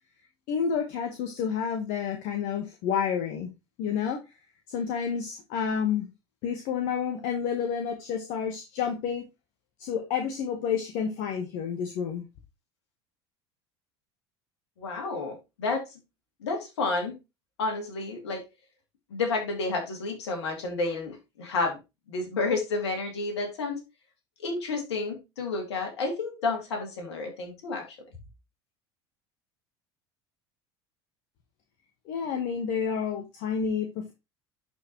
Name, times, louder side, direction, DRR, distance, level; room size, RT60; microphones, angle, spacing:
voice 1, 0.5-3.5 3.8-4.2 4.7-6.1 6.4-9.3 9.8-12.2 32.1-34.1, left 7 dB, 60° left, 4 dB, 1.3 m, -29 dB
voice 2, 14.8-15.8 16.4-17.1 17.6-18.4 19.1-21.8 22.1-23.8 24.4-28.0, left 3 dB, 80° left, 2 dB, 2.4 m, -30 dB
11.0 x 4.6 x 3.0 m, 0.25 s
hypercardioid pair, 75°, 14 cm